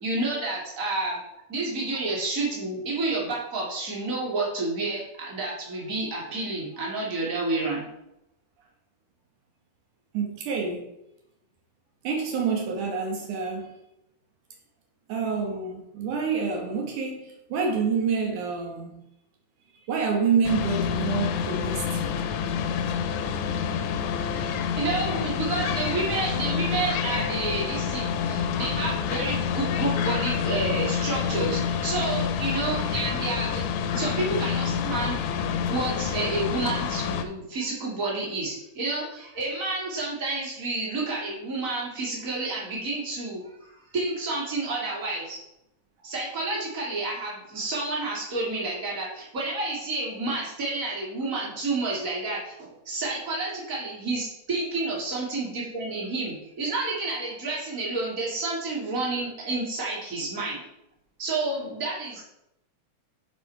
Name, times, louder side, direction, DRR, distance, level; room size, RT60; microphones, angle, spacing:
voice 1, 0.0-1.2 1.5-7.9 24.5-45.4 46.0-60.6 61.2-62.2, right 2 dB, 25° right, 2.6 m, -30 dB
voice 2, 10.1-10.9 12.0-13.7 15.1-19.1 19.9-21.9, right 5 dB, 75° right, 2.6 m, -27 dB
sound 1, 20.4-37.2, left 7 dB, 80° left, 2.0 m, -28 dB
9.3 x 4.8 x 4.5 m
omnidirectional pair, 3.6 m